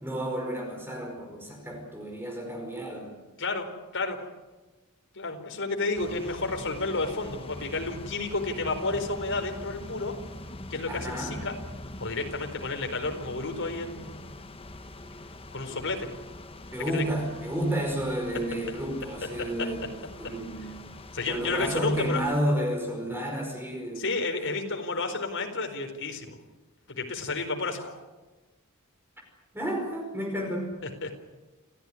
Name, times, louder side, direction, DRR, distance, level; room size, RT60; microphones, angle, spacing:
voice 1, 0.0-3.1 10.9-11.4 16.7-20.8 21.3-24.0 29.5-30.8, right 1 dB, 10° right, 2 dB, 5.0 m, -31 dB
voice 2, 5.1-10.1 10.7-11.5 12.0-14.3 15.5-16.1 16.9-17.0 21.1-22.2 24.0-26.4 26.9-28.0 31.0-31.1, left 3 dB, 60° left, 4 dB, 4.4 m, -31 dB
sound 1, 5.9-22.4, left 1 dB, 25° left, 1.4 m, -43 dB
28.0 x 15.5 x 9.9 m, 1.2 s
head